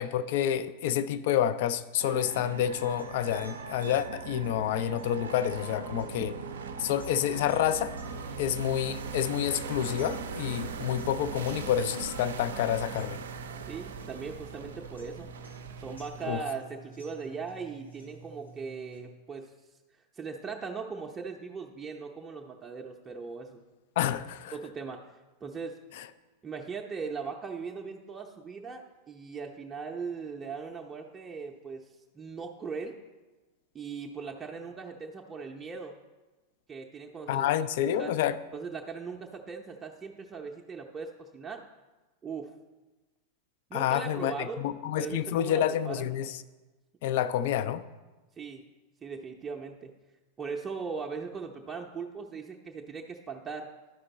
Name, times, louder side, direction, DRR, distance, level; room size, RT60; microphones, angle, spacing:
voice 1, 0.0-6.4 6.8-7.9 8.4-13.2 16.3-16.4 24.0-24.5 26.0-26.1 37.3-38.4 43.7-46.4 47.0-47.8, left 10 dB, 50° left, 13 dB, 0.4 m, -28 dB
sound 1, 2.0-16.4, right 6 dB, 65° right, 0.5 m, -40 dB
sound 2, 3.0-19.0, right 1 dB, 85° left, 1.6 m, -48 dB
voice 2, 13.6-15.3 15.8-19.5 19.9-23.6 24.1-24.2 24.5-25.0 25.4-25.8 26.4-31.9 32.1-33.0 33.7-36.0 36.7-37.5 37.8-38.1 38.5-41.6 42.2-42.5 43.7-44.6 45.0-46.1 48.4-48.6 49.0-49.9 50.4-53.7, right 5 dB, 20° right, 1 dB, 0.6 m, -39 dB
12.0 x 5.1 x 4.1 m, 1.2 s
figure-of-eight pair, 90°, 0 cm